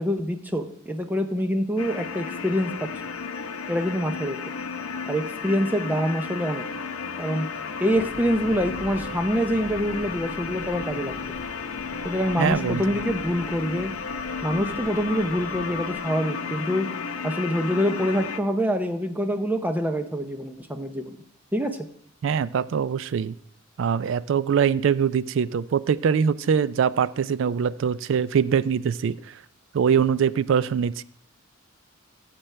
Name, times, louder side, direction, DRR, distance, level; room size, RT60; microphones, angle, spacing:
voice 1, 0.0-2.9 3.7-4.4 5.1-6.6 7.2-7.5 7.8-11.2 12.0-13.9 14.4-16.9 17.2-21.2 21.5-21.9, equal, 10° right, 6 dB, 0.6 m, -25 dB
sound 1, 1.8-18.4, left 5 dB, 85° left, 0.7 m, -33 dB
sound 2, 7.9-16.0, right 1 dB, 80° right, 2.4 m, -44 dB
voice 2, 12.4-12.8 22.2-23.4 23.8-29.2 29.7-31.0, right 7 dB, 60° right, 18 dB, 0.3 m, -23 dB
13.0 x 7.7 x 3.3 m, 0.67 s
head